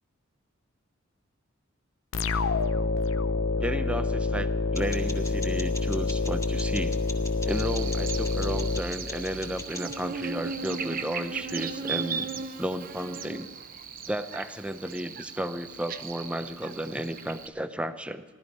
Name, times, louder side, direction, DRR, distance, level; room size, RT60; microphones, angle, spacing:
sound 1, 2.1-9.6, left 3 dB, 85° left, 0.7 m, -28 dB
voice 1, 3.6-7.0 7.4-12.3 12.6-13.5 14.1-18.2, right 1 dB, 5° right, 9 dB, 0.7 m, -33 dB
sound 2, 4.7-10.1, left 2 dB, 15° left, 1.9 m, -43 dB
Buzz, 7.5-17.5, right 5 dB, 45° right, 0.9 m, -37 dB
18.0 x 12.5 x 5.3 m, 1.5 s
head